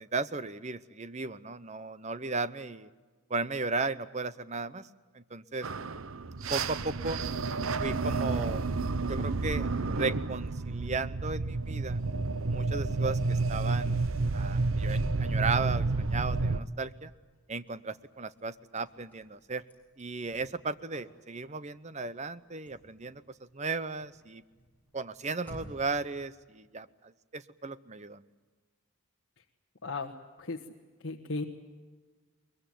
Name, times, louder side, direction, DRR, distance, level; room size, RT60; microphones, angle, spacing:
voice 1, 0.0-2.9 3.3-4.9 5.1-5.7 6.5-7.2 7.8-8.6 9.1-9.7 10.0-12.0 12.5-14.0 14.3-17.1 17.5-19.6 20.0-23.2 23.5-24.4 24.9-26.9 27.3-28.2, right 3 dB, 30° right, 15 dB, 0.8 m, -35 dB
sound 1, 5.6-16.6, right 3 dB, 65° right, 0.8 m, -30 dB
Car / Slam, 17.3-26.0, equal, 10° left, 6.0 m, -55 dB
voice 2, 29.8-30.7 31.0-31.4, left 3 dB, 55° left, 0 dB, 1.5 m, -36 dB
22.5 x 22.5 x 9.2 m, 1.4 s
head